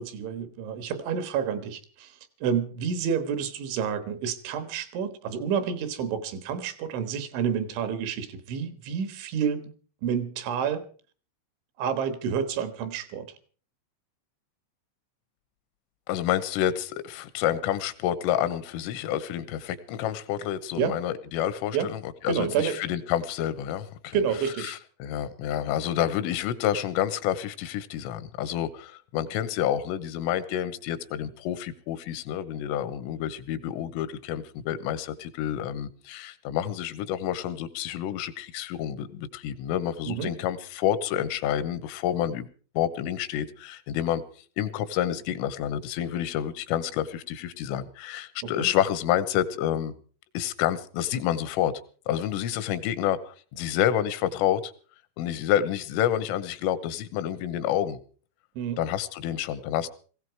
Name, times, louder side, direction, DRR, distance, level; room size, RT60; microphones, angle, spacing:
voice 1, 0.0-9.7 10.0-10.8 11.8-13.3 20.8-21.0 21.7-21.9 22.3-22.8 24.1-24.8 40.1-40.3 48.4-48.7 58.6-58.8, right 7 dB, 75° right, 11 dB, 3.7 m, -29 dB
voice 2, 16.1-24.2 24.6-42.5 42.8-44.2 44.6-50.0 50.4-51.7 52.1-54.7 55.2-58.0 58.8-59.9, left 11 dB, 85° left, 13 dB, 3.6 m, -29 dB
19.0 x 16.5 x 4.7 m, 0.42 s
omnidirectional pair, 5.7 m